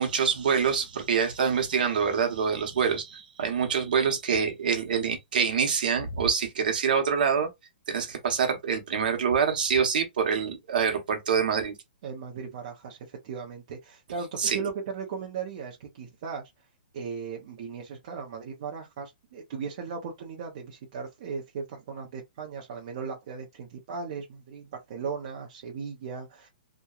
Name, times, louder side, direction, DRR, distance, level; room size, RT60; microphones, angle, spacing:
voice 1, 0.0-7.5 7.9-11.8 14.4-14.6, right 6 dB, 60° right, 0.9 m, -26 dB
voice 2, 12.0-16.4 16.9-26.5, right 5 dB, 35° right, 0.6 m, -37 dB
2.8 x 2.2 x 2.3 m
hypercardioid pair, 175°, 5 cm